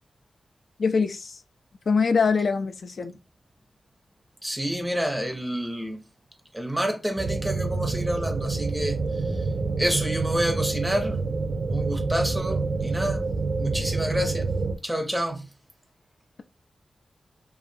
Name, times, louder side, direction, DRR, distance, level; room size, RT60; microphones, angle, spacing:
voice 1, 0.8-1.4 1.9-3.1, left 5 dB, 60° left, 0.3 m, -23 dB
voice 2, 4.4-6.0 6.5-9.5 9.8-11.2 11.7-13.2 13.6-14.6 14.8-15.5, equal, 5° right, 0.6 m, -28 dB
sound 1, 7.2-14.8, right 3 dB, 55° right, 0.4 m, -27 dB
4.6 x 2.5 x 2.7 m
wide cardioid pair, 160°, 0 cm